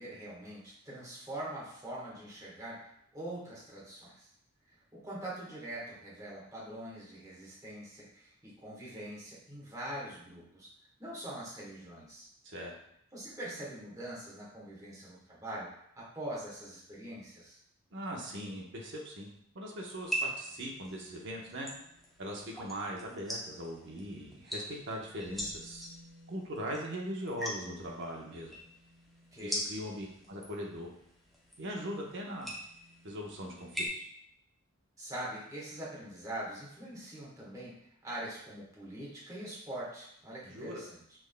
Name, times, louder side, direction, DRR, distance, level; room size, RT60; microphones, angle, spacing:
voice 1, 0.0-4.3 4.9-10.7 11.0-12.3 13.1-17.6 29.3-29.7 35.0-41.0, right 1 dB, 15° right, -6 dB, 1.3 m, -43 dB
voice 2, 17.9-19.3 19.5-21.7 22.2-25.9 26.3-28.5 29.4-30.9 31.6-32.5 33.0-34.0 40.4-40.8, equal, 55° right, -2 dB, 0.9 m, -40 dB
sound 1, 19.9-33.9, equal, ahead, 0.7 m, -42 dB
6.0 x 3.4 x 2.2 m, 0.71 s
head